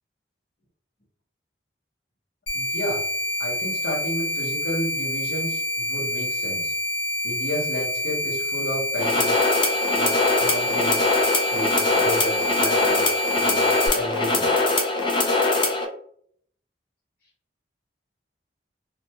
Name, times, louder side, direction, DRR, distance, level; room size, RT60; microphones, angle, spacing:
sound 1, 2.5-13.9, equal, 85° left, 0.7 m, -27 dB
voice 1, 2.5-3.1 3.4-6.7 7.2-9.4 9.9-11.1 11.5-14.5, equal, 55° left, -2 dB, 1.0 m, -32 dB
sound 2, 9.0-15.8, left 2 dB, 25° left, 0.4 m, -22 dB
2.5 x 2.2 x 2.8 m, 0.63 s
head